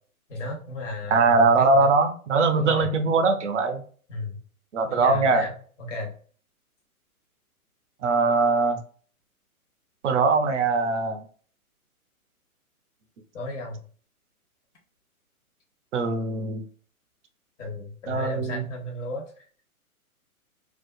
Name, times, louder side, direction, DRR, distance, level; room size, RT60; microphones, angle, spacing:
voice 1, 0.3-1.9 2.6-2.9 4.1-4.4 4.9-6.1 13.3-13.8 17.6-19.2, left 2 dB, 55° left, 0 dB, 1.1 m, -34 dB
voice 2, 1.1-3.8 4.7-5.4 8.0-8.8 10.0-11.2 15.9-16.7 18.1-18.6, right 4 dB, 55° right, 7 dB, 0.5 m, -21 dB
2.6 x 2.3 x 2.2 m, 0.44 s
hypercardioid pair, 130°, 44 cm